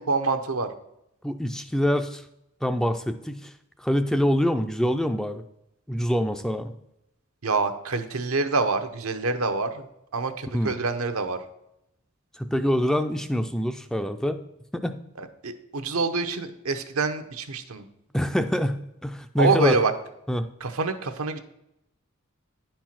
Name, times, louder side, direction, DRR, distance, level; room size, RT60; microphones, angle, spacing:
voice 1, 0.1-0.7 7.4-9.9 10.1-11.4 15.2-17.9 19.4-19.9 20.6-21.4, right 4 dB, 85° right, 8 dB, 0.8 m, -26 dB
voice 2, 1.2-2.2 2.6-3.5 3.8-5.4 5.9-6.7 10.5-10.8 12.3-14.4 14.7-15.0 18.1-19.8 20.3-20.5, equal, 5° left, 8 dB, 0.3 m, -25 dB
9.8 x 4.5 x 5.8 m, 0.83 s
head